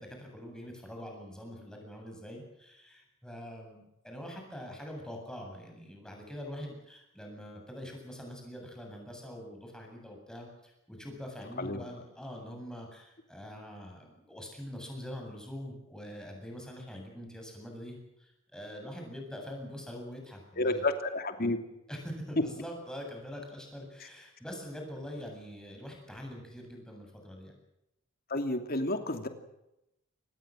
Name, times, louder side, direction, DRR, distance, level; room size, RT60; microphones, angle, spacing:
voice 1, 0.0-20.8 21.9-27.6, equal, 5° left, 1 dB, 7.7 m, -44 dB
voice 2, 20.6-21.6 28.3-29.3, left 2 dB, 50° left, 6 dB, 2.8 m, -30 dB
25.0 x 20.0 x 7.7 m, 0.87 s
head